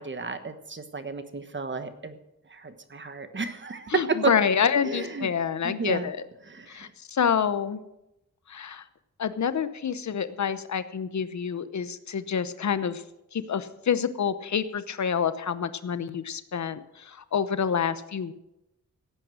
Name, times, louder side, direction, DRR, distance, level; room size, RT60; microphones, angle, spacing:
voice 1, 0.0-2.2 2.5-4.3 4.9-5.3 5.6-6.1 6.5-6.9, right 4 dB, 40° right, 9 dB, 1.3 m, -32 dB
voice 2, 3.9-6.3 6.7-7.8 8.5-8.8 9.2-13.0 13.3-18.3, left 7 dB, 65° left, 13 dB, 0.8 m, -27 dB
16.5 x 8.8 x 6.4 m, 0.89 s
wide cardioid pair, 95°, 30 cm